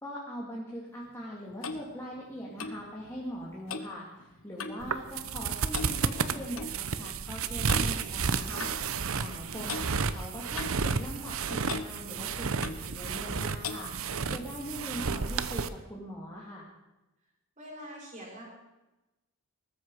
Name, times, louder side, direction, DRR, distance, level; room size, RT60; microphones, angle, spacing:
voice 1, 0.0-13.9 14.3-16.7, equal, 15° left, -4 dB, 2.6 m, -41 dB
Clock, 1.1-4.9 5.2-5.5 5.7-6.7 7.7-7.9 8.6-8.8 9.7-9.9 10.6-11.4 11.7-11.9 12.6-12.9 13.6-13.9, left 5 dB, 70° left, 1.2 m, -40 dB
sound 1, 4.8-15.7, right 5 dB, 75° right, 0.8 m, -32 dB
voice 2, 17.6-18.5, equal, 35° right, -3 dB, 6.1 m, -46 dB
19.0 x 14.0 x 4.9 m, 1.0 s
head